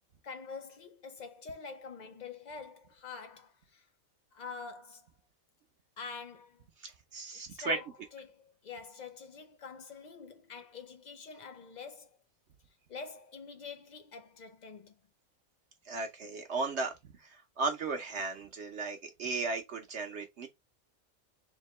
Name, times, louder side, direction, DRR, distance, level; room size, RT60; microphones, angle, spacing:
voice 1, 0.2-3.9 4.3-5.1 6.0-6.7 7.5-12.2 12.9-15.0, left 5 dB, 80° left, 0.4 m, -46 dB
voice 2, 6.8-7.8 15.8-20.5, right 3 dB, 60° right, 0.9 m, -36 dB
3.6 x 2.7 x 4.1 m
omnidirectional pair, 1.4 m